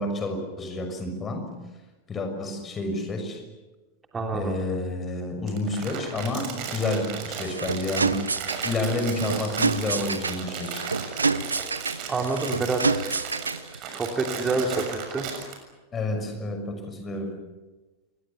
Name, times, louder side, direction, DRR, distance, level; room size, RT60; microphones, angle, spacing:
voice 1, 0.0-1.5 2.1-3.4 4.3-8.4 8.6-10.9 15.9-17.4, left 2 dB, 20° left, 6 dB, 6.1 m, -29 dB
voice 2, 4.1-4.5 12.1-13.1 13.7-15.3, right 3 dB, 15° right, 2 dB, 3.1 m, -28 dB
Crumpling crinkling, 5.5-15.5, right 7 dB, 40° right, 6.7 m, -36 dB
sound 1, 7.2-13.8, right 4 dB, 80° right, 0.8 m, -28 dB
27.5 x 23.5 x 7.0 m, 1.2 s
figure-of-eight pair, 90°, 0 cm